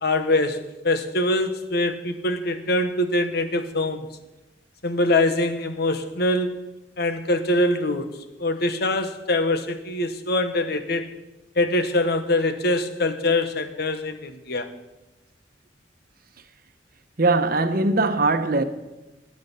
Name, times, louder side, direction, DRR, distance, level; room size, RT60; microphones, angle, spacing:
voice 1, 0.0-4.1 4.8-6.6 7.0-8.1 8.4-11.1 11.5-14.7, left 1 dB, 65° left, 1.2 m, -23 dB
voice 2, 17.2-18.6, right 3 dB, 55° right, 1.0 m, -20 dB
21.0 x 7.9 x 5.6 m
head